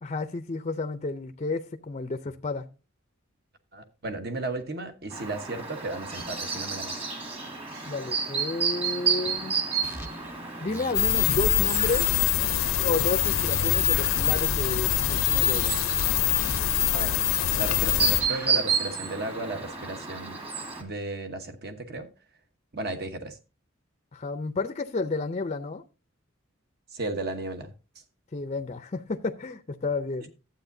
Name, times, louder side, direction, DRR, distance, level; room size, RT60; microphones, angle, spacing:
voice 1, 0.0-2.7 7.8-9.6 10.6-12.1 12.8-15.7 24.1-25.8 28.3-30.3, left 3 dB, 35° left, 0.5 m, -31 dB
voice 2, 3.7-7.0 16.9-17.2 17.6-20.4 20.8-22.1 22.7-23.4 26.9-27.7, right 2 dB, 50° right, 1.1 m, -34 dB
Chirp tweet, 5.1-20.8, right 5 dB, 30° right, 2.1 m, -32 dB
sound 1, 9.8-10.3 10.7-12.5 12.8-14.7 15.0-16.9 17.2-18.5, equal, 10° right, 0.9 m, -41 dB
sound 2, 10.9-18.2, left 12 dB, 80° left, 0.6 m, -24 dB
12.0 x 8.2 x 2.7 m
head